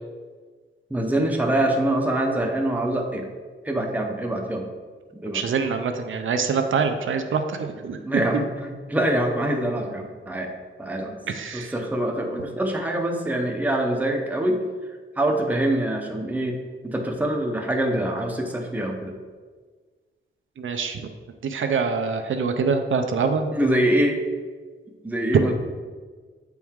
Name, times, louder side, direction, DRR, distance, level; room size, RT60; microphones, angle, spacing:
voice 1, 0.9-3.3 3.6-4.7 5.2-5.4 8.0-10.5 10.8-11.2 11.5-14.6 15.2-16.6 16.8-19.1 23.5-24.2 25.0-25.5, right 1 dB, 10° right, 1 dB, 0.7 m, -24 dB
voice 2, 5.3-8.2 11.3-11.7 20.6-21.0 21.4-23.5, right 5 dB, 75° right, 6 dB, 0.5 m, -25 dB
8.1 x 4.6 x 3.6 m, 1.5 s
wide cardioid pair, 165°, 21 cm